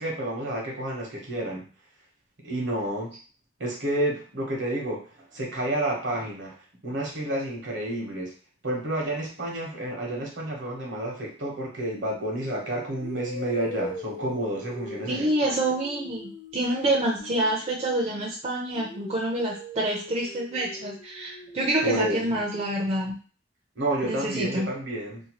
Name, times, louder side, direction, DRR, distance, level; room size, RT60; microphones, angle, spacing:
voice 1, 0.0-1.7 2.4-3.1 3.6-5.1 5.3-6.6 6.8-8.3 8.6-15.5 21.8-22.2 23.8-25.2, right 1 dB, 75° right, -1 dB, 1.0 m, -30 dB
sound 1, 11.9-12.2 13.0-18.3 18.7-22.7, left 1 dB, 65° left, 0.6 m, -41 dB
voice 2, 15.1-23.1 24.0-24.7, right 1 dB, 35° right, -3 dB, 0.5 m, -27 dB
2.7 x 2.3 x 2.9 m, 0.38 s
head